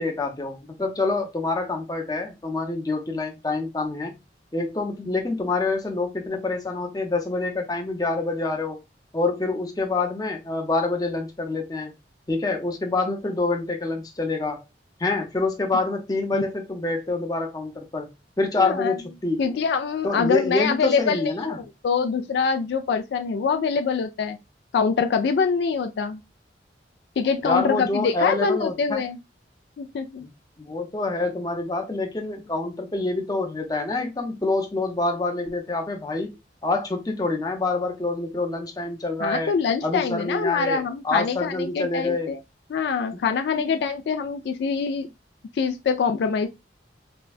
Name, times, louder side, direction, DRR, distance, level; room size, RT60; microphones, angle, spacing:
voice 1, 0.0-4.1 4.5-8.8 9.1-11.9 12.3-14.6 15.0-18.1 18.4-19.4 20.0-21.6 27.4-29.0 30.2-30.3 30.6-36.3 36.6-39.5 39.8-42.4 43.1-43.2 43.5-43.7, left 3 dB, 20° left, 0.7 m, -26 dB
voice 2, 18.6-19.0 19.4-21.6 21.8-24.4 24.7-26.2 27.2-29.2 29.8-30.2 39.2-42.4 42.7-45.1 45.5-46.5, left 5 dB, 65° left, 0.3 m, -24 dB
4.3 x 2.2 x 2.3 m
head